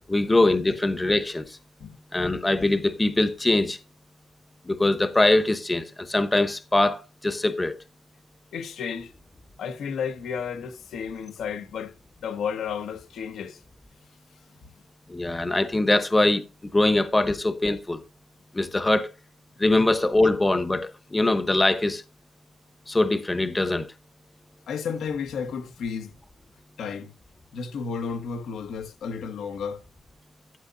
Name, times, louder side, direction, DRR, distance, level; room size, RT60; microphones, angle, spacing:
voice 1, 0.1-1.6 2.1-3.8 4.6-7.8 15.1-18.0 18.5-19.1 19.6-22.0 22.9-23.9, left 2 dB, 15° left, 0.9 m, -22 dB
voice 2, 8.5-9.1 9.6-11.9 12.2-13.6 19.7-19.8 24.7-26.1 26.8-27.1 27.5-29.8, left 6 dB, 75° left, 1.4 m, -32 dB
12.0 x 9.6 x 2.7 m
cardioid pair, 105°, 0 cm